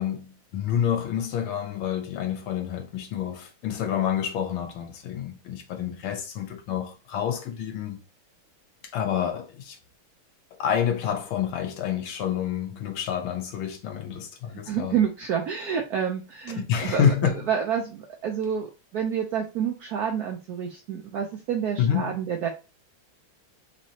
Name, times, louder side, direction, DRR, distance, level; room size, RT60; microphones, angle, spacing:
voice 1, 0.0-8.0 8.9-9.8 10.5-15.0 16.6-17.5 21.8-22.2, left 9 dB, 80° left, 1.6 m, -28 dB
voice 2, 14.5-22.5, right 8 dB, 80° right, 0.8 m, -29 dB
4.7 x 3.0 x 2.7 m
omnidirectional pair, 2.3 m